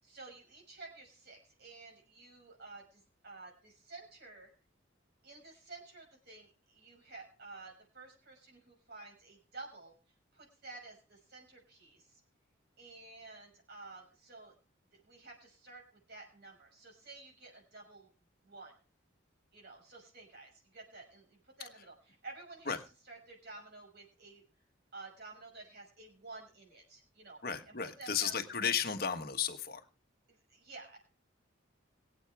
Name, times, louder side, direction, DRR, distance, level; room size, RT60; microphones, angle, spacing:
voice 1, 0.0-4.5 5.2-10.0 10.3-12.2 12.8-14.5 14.9-18.1 18.4-18.7 19.5-22.7 23.1-24.4 24.9-27.4 27.7-28.5 30.3-31.0, right 3 dB, 55° right, -1 dB, 5.8 m, -52 dB
voice 2, 27.4-29.8, left 7 dB, 50° left, 7 dB, 1.3 m, -34 dB
22.5 x 8.2 x 3.5 m, 0.34 s
head